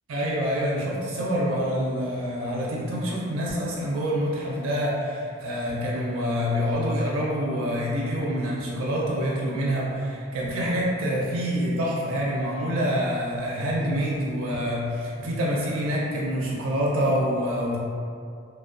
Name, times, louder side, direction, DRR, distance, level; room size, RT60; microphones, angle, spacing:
voice 1, 0.1-17.8, equal, 80° right, -4 dB, 0.4 m, -26 dB
2.4 x 2.0 x 2.4 m, 2.3 s
head